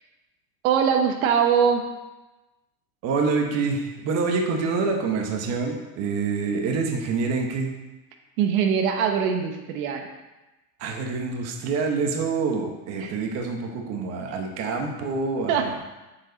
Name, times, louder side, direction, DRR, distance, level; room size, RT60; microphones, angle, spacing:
voice 1, 0.6-1.8 8.4-10.1 13.0-13.1 15.5-15.7, right 7 dB, 90° right, 3 dB, 1.2 m, -22 dB
voice 2, 3.0-7.7 10.8-15.8, right 4 dB, 40° right, 2 dB, 1.2 m, -26 dB
7.3 x 6.9 x 4.0 m, 1.1 s
supercardioid pair, 155°, 40 cm